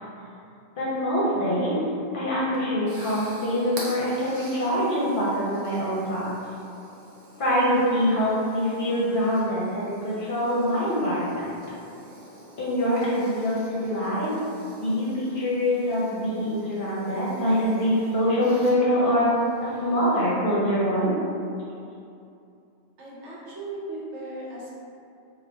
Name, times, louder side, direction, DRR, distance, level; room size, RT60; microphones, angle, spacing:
voice 1, 0.8-1.8 2.1-6.3 7.4-11.6 12.6-14.3 14.8-19.3 19.6-21.1, equal, 50° left, -7 dB, 0.8 m, -24 dB
sound 1, 2.3-20.3, right 1 dB, 60° right, 0.8 m, -46 dB
voice 2, 23.0-24.7, right 2 dB, 75° right, -7 dB, 1.1 m, -37 dB
2.8 x 2.5 x 3.3 m, 2.6 s
omnidirectional pair, 1.2 m